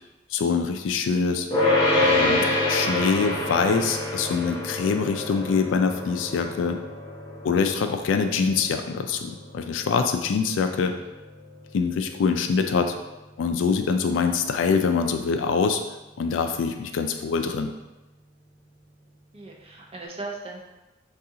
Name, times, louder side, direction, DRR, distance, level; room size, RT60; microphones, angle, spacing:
voice 1, 0.3-1.5 2.0-6.8 7.4-10.9 11.7-13.0 13.4-15.8 16.2-17.7, left 5 dB, 85° left, 6 dB, 0.3 m, -24 dB
sound 1, 1.5-12.8, left 2 dB, 25° left, 0.8 m, -27 dB
voice 2, 19.3-20.6, right 3 dB, 30° right, -1 dB, 0.5 m, -38 dB
2.7 x 2.4 x 3.7 m, 1.0 s
head